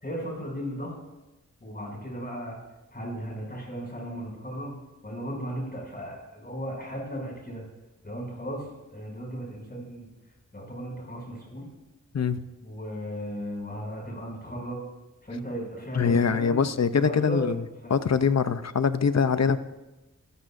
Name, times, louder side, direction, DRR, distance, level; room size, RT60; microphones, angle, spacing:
voice 1, 0.0-1.0 1.6-2.6 2.9-7.6 8.0-10.1 10.5-11.6 12.6-14.8 15.2-16.6 17.0-17.6 17.8-18.0, equal, 30° left, -2 dB, 6.7 m, -36 dB
voice 2, 12.1-12.5 15.9-17.6 17.9-19.6, left 6 dB, 60° left, 12 dB, 0.7 m, -23 dB
27.5 x 14.0 x 2.6 m, 1.0 s
wide cardioid pair, 85°, 30 cm